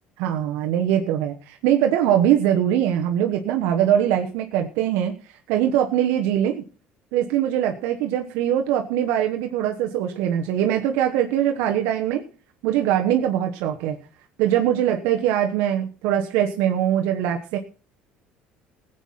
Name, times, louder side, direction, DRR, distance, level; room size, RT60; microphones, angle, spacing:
voice 1, 0.2-5.1 5.5-6.6 7.1-12.2 12.6-14.0 14.4-17.6, right 10 dB, 80° right, 4 dB, 1.2 m, -22 dB
15.5 x 8.2 x 5.7 m, 0.38 s
supercardioid pair, 100°, 4 cm